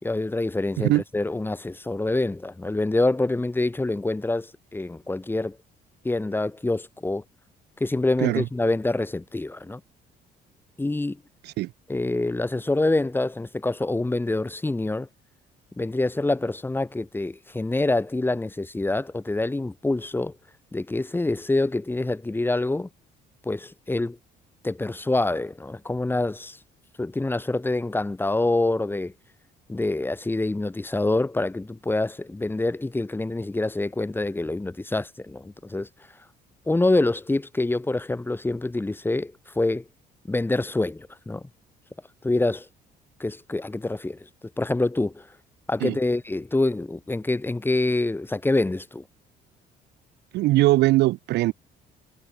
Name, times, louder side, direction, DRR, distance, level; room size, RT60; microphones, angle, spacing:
voice 1, 0.0-5.6 6.0-7.2 7.8-9.8 10.8-11.2 11.9-15.1 15.8-20.3 20.7-22.9 23.4-24.2 24.6-26.6 27.0-29.1 29.7-35.9 36.7-39.8 40.3-41.4 42.2-42.7 43.2-44.3 44.6-45.3 45.7-49.0, left 2 dB, 10° left, 4.0 m, -26 dB
voice 2, 50.3-51.5, right 18 dB, 80° right, 2.1 m, -21 dB
cardioid pair, 110°, 17 cm